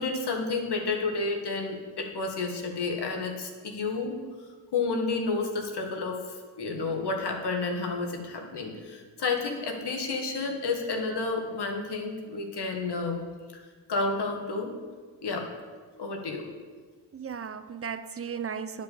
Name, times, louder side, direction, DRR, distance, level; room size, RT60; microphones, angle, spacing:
voice 1, 0.0-4.2 4.7-6.2 6.6-13.2 13.5-13.6 13.9-14.8 15.2-15.5 16.0-16.5, left 3 dB, 55° left, 2 dB, 2.0 m, -30 dB
voice 2, 17.1-18.8, right 7 dB, 30° right, 12 dB, 0.7 m, -36 dB
10.0 x 5.4 x 7.1 m, 1.5 s
hypercardioid pair, 45°, 46 cm